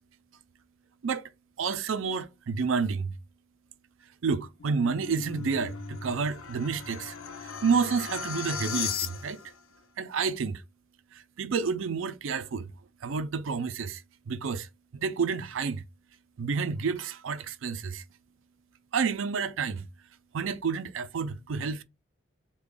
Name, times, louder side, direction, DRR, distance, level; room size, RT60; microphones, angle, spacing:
voice 1, 1.6-3.1 4.2-7.2 7.4-9.4 10.0-10.6 11.4-12.7 13.0-14.7 14.9-15.8 16.4-18.0 18.9-19.8 20.3-21.8, right 5 dB, 75° right, 0.4 m, -29 dB
sound 1, 4.4-9.6, left 7 dB, 85° left, 0.6 m, -37 dB
3.4 x 2.3 x 3.7 m
head